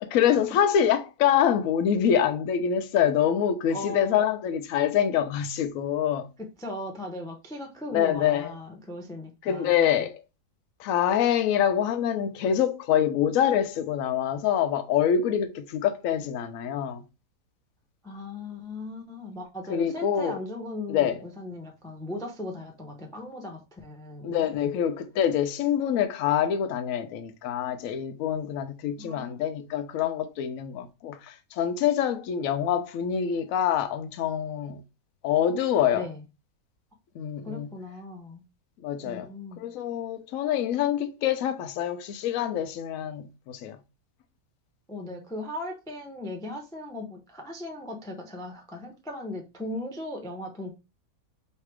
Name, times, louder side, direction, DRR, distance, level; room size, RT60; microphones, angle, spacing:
voice 1, 0.0-6.3 7.9-8.5 9.4-10.2 10.8-17.0 19.7-20.4 20.9-21.2 24.2-34.8 35.2-36.1 37.1-37.7 38.8-39.3 39.6-43.8, left 9 dB, 70° left, 0.9 m, -25 dB
voice 2, 3.7-4.3 6.4-10.0 18.0-24.7 29.0-29.4 35.9-36.2 37.4-38.4 39.0-39.7 44.9-50.7, left 1 dB, 5° left, 0.4 m, -38 dB
3.2 x 2.8 x 4.5 m
omnidirectional pair, 1.6 m